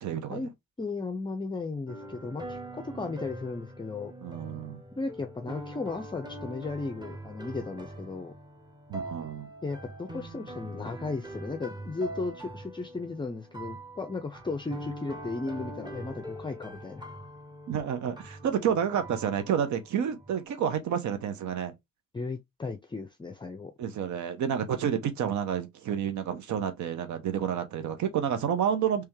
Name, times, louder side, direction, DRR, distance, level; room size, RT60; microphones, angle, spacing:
voice 1, 0.0-0.4 4.2-4.8 8.9-9.5 17.7-21.7 23.8-29.0, right 8 dB, 70° right, 0.8 m, -29 dB
voice 2, 0.8-4.1 5.0-8.3 9.6-17.1 22.1-23.7, left 3 dB, 15° left, 0.5 m, -35 dB
sound 1, 1.9-20.4, right 1 dB, 15° right, 1.1 m, -43 dB
3.4 x 3.3 x 3.1 m
cardioid pair, 90°, 30 cm